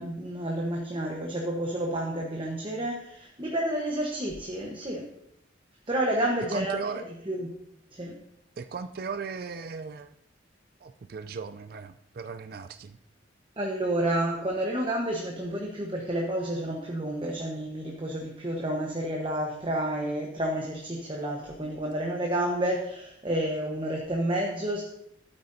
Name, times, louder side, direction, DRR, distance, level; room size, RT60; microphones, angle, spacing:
voice 1, 0.0-5.1 5.9-6.8 7.3-7.5 7.9-8.2 13.6-24.8, right 1 dB, 25° right, 0 dB, 1.0 m, -30 dB
voice 2, 6.5-7.0 8.6-10.1 10.8-13.0, right 5 dB, 50° right, 10 dB, 0.4 m, -37 dB
12.0 x 8.9 x 2.7 m, 0.79 s
head